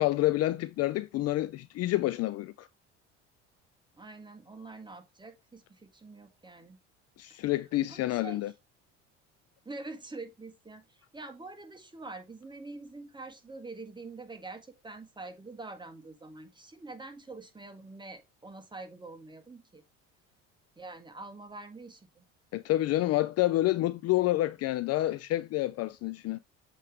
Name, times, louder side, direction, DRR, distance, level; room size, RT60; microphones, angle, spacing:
voice 1, 0.0-2.7 7.2-8.5 22.5-26.4, left 16 dB, 45° left, 0.4 m, -28 dB
voice 2, 4.0-6.8 7.3-7.5 7.9-8.5 9.6-19.8 20.8-22.3, right 3 dB, 10° right, 1.5 m, -45 dB
7.5 x 3.2 x 4.7 m
hypercardioid pair, 65°, 36 cm